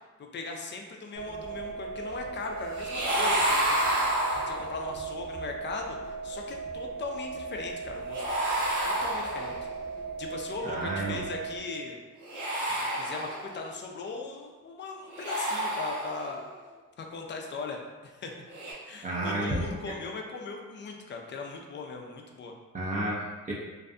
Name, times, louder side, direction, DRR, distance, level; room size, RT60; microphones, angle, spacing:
voice 1, 0.3-4.1 4.5-8.3 8.8-9.6 10.2-12.0 12.8-16.4 17.0-18.3 18.8-22.6, left 4 dB, 40° left, 2 dB, 0.4 m, -39 dB
sound 1, 1.2-11.6, right 4 dB, 45° right, 1.0 m, -38 dB
sound 2, 2.7-4.9 8.1-9.8 12.2-13.7 15.1-16.4 18.5-18.7, right 1 dB, 70° right, 0.9 m, -29 dB
voice 2, 10.6-11.2 19.0-19.9 22.7-23.5, right 1 dB, 25° right, -5 dB, 0.5 m, -31 dB
2.6 x 2.1 x 2.4 m, 1.3 s
cardioid pair, 90°, 30 cm